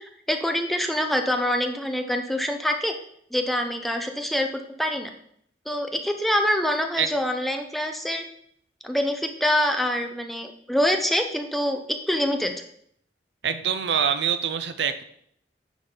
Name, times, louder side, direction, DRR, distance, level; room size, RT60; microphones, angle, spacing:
voice 1, 0.0-2.9 3.3-4.5 4.8-5.1 5.7-8.2 8.8-12.5, left 1 dB, ahead, 4 dB, 0.6 m, -25 dB
voice 2, 13.4-15.0, right 8 dB, 75° right, 10 dB, 0.6 m, -25 dB
9.8 x 4.0 x 3.9 m, 0.68 s
head